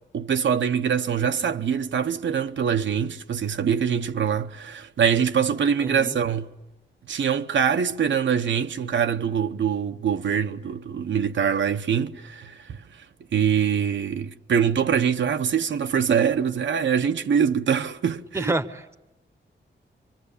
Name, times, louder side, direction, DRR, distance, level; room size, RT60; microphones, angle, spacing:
voice 1, 0.1-6.5 7.1-12.8 13.3-18.5, right 7 dB, 80° right, 1.0 m, -24 dB
voice 2, 5.8-6.2 18.3-18.9, right 2 dB, 15° right, 0.9 m, -28 dB
26.5 x 24.5 x 8.4 m
wide cardioid pair, 160°, 19 cm